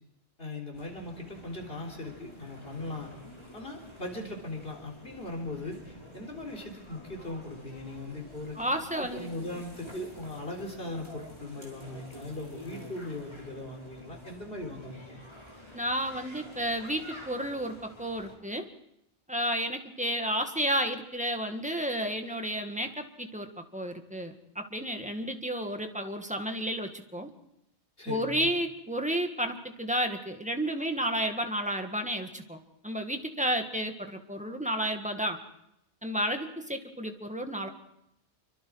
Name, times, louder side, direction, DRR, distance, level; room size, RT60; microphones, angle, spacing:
voice 1, 0.4-3.1 3.5-8.6 9.0-15.2 28.0-28.5, left 2 dB, 55° left, 1 dB, 4.0 m, -39 dB
sound 1, 0.7-18.3, left 1 dB, 25° left, 5.3 m, -48 dB
voice 2, 8.6-9.3 15.7-18.7 19.3-27.3 28.0-32.6 32.8-35.4 36.0-37.7, equal, 5° right, 5 dB, 1.7 m, -32 dB
27.0 x 24.5 x 4.7 m, 0.80 s
omnidirectional pair, 1.2 m